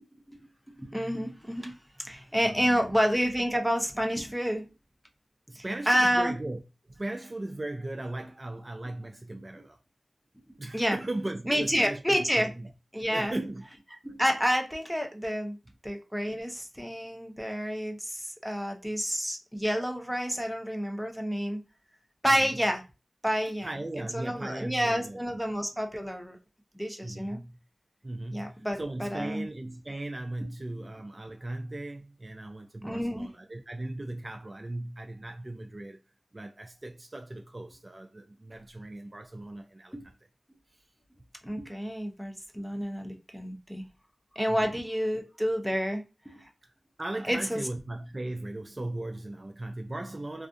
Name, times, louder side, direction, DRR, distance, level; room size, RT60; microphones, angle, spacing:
voice 1, 0.3-4.7 5.6-6.3 10.7-11.0 11.5-12.5 12.9-13.5 14.0-15.6 15.8-21.6 22.2-22.8 23.2-23.7 24.0-26.4 26.8-27.4 28.3-29.4 30.4-30.5 32.8-33.3 39.9-40.1 41.4-43.9 44.3-46.5 47.3-47.6, equal, ahead, 0.7 m, -29 dB
voice 2, 2.4-3.0 5.5-6.6 6.8-9.8 10.6-12.7 13.1-13.7 18.9-19.0 22.3-22.6 23.6-25.4 27.0-27.6 28.0-36.0 36.3-40.1 40.7-40.8 44.5-44.6 46.6-46.7 47.0-50.5, right 2 dB, 35° right, 0.4 m, -38 dB
2.5 x 2.4 x 2.5 m
cardioid pair, 40°, 0 cm